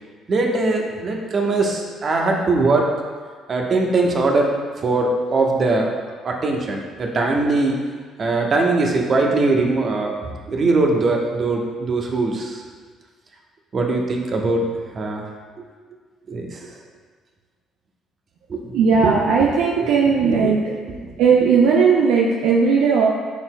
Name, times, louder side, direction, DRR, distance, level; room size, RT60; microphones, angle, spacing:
voice 1, 0.3-2.9 3.5-4.5 4.8-5.9 6.2-7.7 8.2-10.2 10.5-12.6 13.7-14.7 14.9-15.2 16.3-16.7 18.5-18.6 20.2-20.4, right 3 dB, 45° right, 0 dB, 1.1 m, -20 dB
voice 2, 18.7-20.6 21.2-23.1, right 5 dB, 75° right, -3 dB, 0.6 m, -16 dB
10.5 x 4.5 x 2.3 m, 1.5 s
hypercardioid pair, 55°, 0 cm